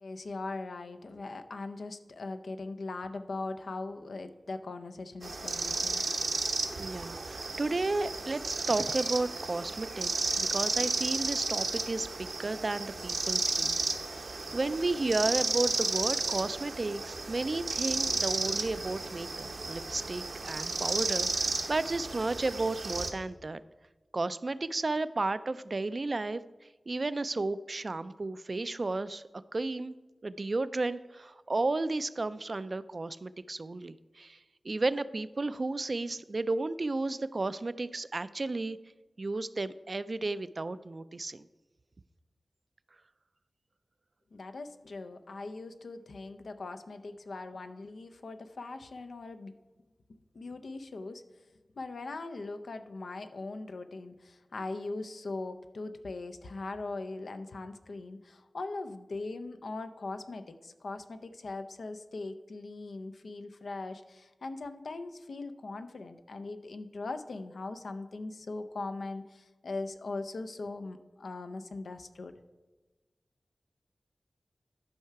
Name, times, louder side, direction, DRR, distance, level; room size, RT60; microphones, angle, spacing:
voice 1, 0.0-6.0 44.3-49.5 50.3-51.2 51.8-72.4, left 3 dB, 85° left, 8 dB, 0.5 m, -40 dB
sound 1, 5.2-23.1, right 3 dB, 75° right, 0.9 m, -33 dB
voice 2, 6.8-13.8 14.2-23.6 24.1-26.4 26.9-29.2 29.5-29.9 30.2-34.4 34.6-38.8 39.2-41.5, right 2 dB, 50° right, 14 dB, 0.3 m, -33 dB
11.5 x 5.6 x 4.6 m, 1.2 s
wide cardioid pair, 70°, 0 cm